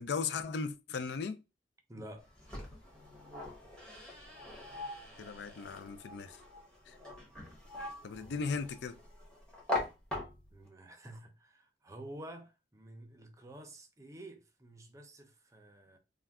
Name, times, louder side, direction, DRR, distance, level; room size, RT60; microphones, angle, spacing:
voice 1, 0.0-1.4 5.2-6.4 6.9-7.0 8.0-9.0, left 5 dB, 65° left, 0.4 m, -37 dB
voice 2, 1.9-2.3 10.5-16.0, right 1 dB, 15° right, 0.5 m, -50 dB
sound 1, 2.2-10.7, left 2 dB, 5° left, 0.8 m, -42 dB
2.4 x 2.2 x 3.4 m
head